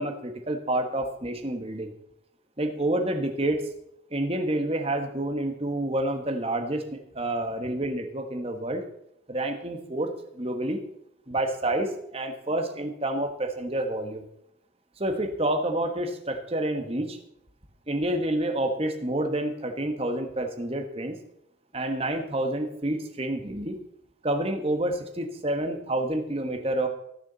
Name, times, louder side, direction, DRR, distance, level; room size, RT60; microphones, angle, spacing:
voice 1, 0.0-1.9 2.6-3.6 4.1-8.8 9.3-10.8 11.3-14.2 15.0-17.2 17.9-21.2 21.7-23.8 24.2-26.9, right 1 dB, 30° right, 4 dB, 1.4 m, -28 dB
19.0 x 7.2 x 4.0 m, 0.79 s
head